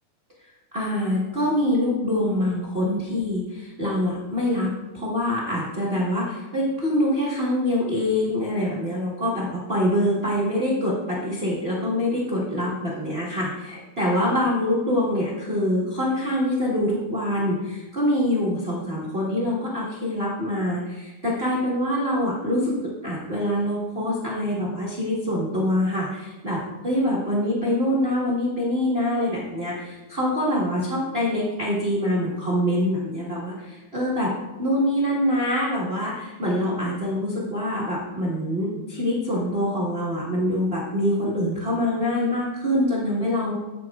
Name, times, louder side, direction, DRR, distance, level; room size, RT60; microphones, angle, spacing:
voice 1, 0.7-4.7 4.9-22.8 23.0-34.3 34.6-43.6, left 1 dB, 65° right, -6 dB, 0.6 m, -25 dB
15.0 x 6.1 x 2.3 m, 1.1 s
omnidirectional pair, 3.4 m